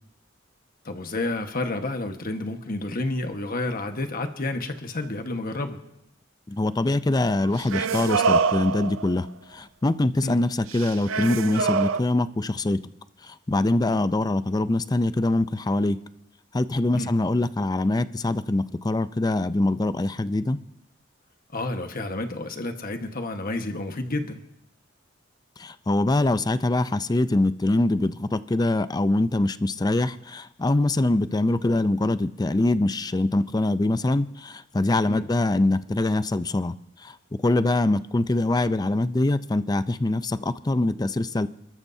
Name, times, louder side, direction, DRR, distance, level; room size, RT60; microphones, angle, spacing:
voice 1, 0.8-5.8 10.2-10.4 16.9-17.1 21.5-24.4 35.1-35.2, left 2 dB, 50° left, 6 dB, 1.4 m, -30 dB
voice 2, 6.5-12.8 13.2-16.0 16.5-20.6 25.6-41.5, left 2 dB, 20° left, 13 dB, 0.5 m, -24 dB
sound 1, 7.4-9.3 10.7-12.0, right 5 dB, 80° right, 0.5 m, -25 dB
29.0 x 13.5 x 2.7 m, 0.80 s
head